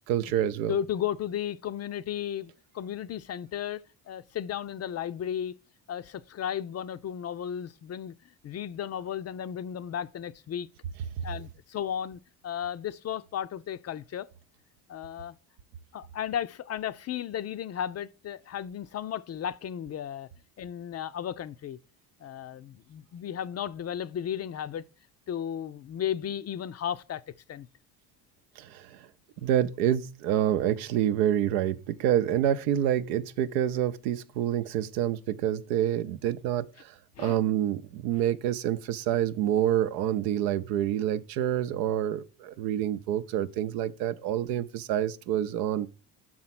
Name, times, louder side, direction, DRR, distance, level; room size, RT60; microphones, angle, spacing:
voice 1, 0.1-0.8 28.6-29.1 29.4-45.9, right 11 dB, 85° right, 0.7 m, -27 dB
voice 2, 0.7-5.5 5.9-8.1 8.4-10.7 11.2-14.3 14.9-15.4 15.9-20.3 20.6-21.8 22.2-24.8 25.3-27.2 27.5-27.7 37.2-37.4, left 9 dB, 35° left, 0.4 m, -34 dB
6.0 x 4.3 x 5.9 m
hypercardioid pair, 70°, 48 cm